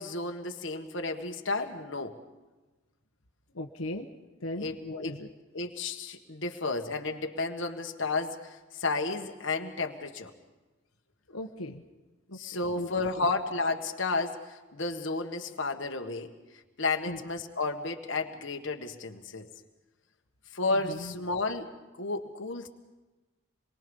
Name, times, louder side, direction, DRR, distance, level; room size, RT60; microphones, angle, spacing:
voice 1, 0.0-2.2 4.6-5.2 5.5-10.3 12.3-16.3 16.8-19.5 20.5-21.7 22.0-22.7, left 3 dB, 60° left, 4 dB, 1.7 m, -32 dB
voice 2, 3.5-4.1 4.4-5.3 11.3-11.8 12.3-12.4 12.7-12.9 13.2-13.3 17.1-17.2 20.8-21.1, left 1 dB, 90° left, 3 dB, 1.3 m, -37 dB
27.0 x 22.5 x 5.4 m, 1.2 s
head